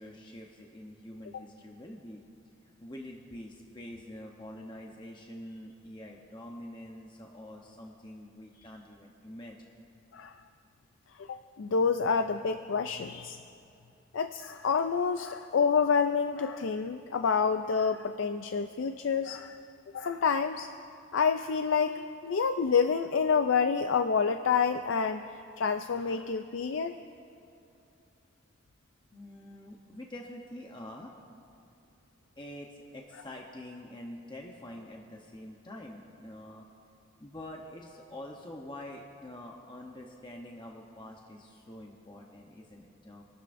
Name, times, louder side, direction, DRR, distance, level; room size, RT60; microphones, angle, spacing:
voice 1, 0.0-2.2 2.8-9.7 29.1-31.1 32.4-36.7 37.2-43.2, left 1 dB, 25° left, 0 dB, 0.9 m, -46 dB
voice 2, 11.2-13.4 14.1-19.6 19.9-20.7 21.1-25.3 25.6-26.9, left 5 dB, 80° left, 9 dB, 0.4 m, -28 dB
27.0 x 12.5 x 2.6 m, 2.6 s
head